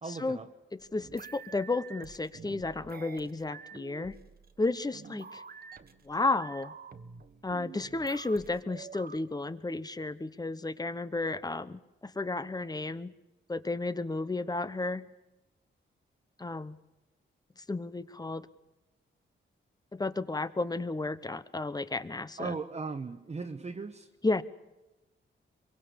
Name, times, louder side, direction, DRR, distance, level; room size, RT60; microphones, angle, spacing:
voice 1, 0.0-0.5 22.4-24.1, right 4 dB, 30° right, 3 dB, 1.2 m, -37 dB
sound 1, 0.8-9.2, right 5 dB, 45° right, 1.4 m, -48 dB
voice 2, 0.9-4.1 4.6-5.4 6.0-6.7 7.4-13.1 13.5-15.1 16.4-16.8 17.7-18.5 19.9-22.6 24.2-24.4, left 2 dB, 20° left, 14 dB, 1.0 m, -33 dB
25.5 x 23.5 x 7.0 m, 1.0 s
wide cardioid pair, 115°, 21 cm